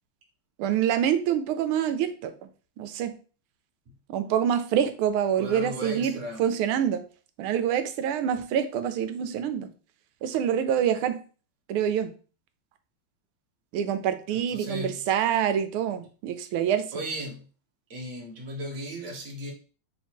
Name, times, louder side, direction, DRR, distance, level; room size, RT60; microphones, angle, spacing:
voice 1, 0.6-2.3 2.8-3.1 4.1-7.0 7.4-9.7 10.2-11.2 11.7-12.1 13.7-16.8, right 9 dB, 80° right, 10 dB, 1.4 m, -26 dB
voice 2, 5.4-6.4 14.3-15.0 16.9-17.4 17.9-19.5, equal, 45° right, 0 dB, 1.3 m, -36 dB
3.9 x 2.8 x 4.4 m, 0.38 s
omnidirectional pair, 2.4 m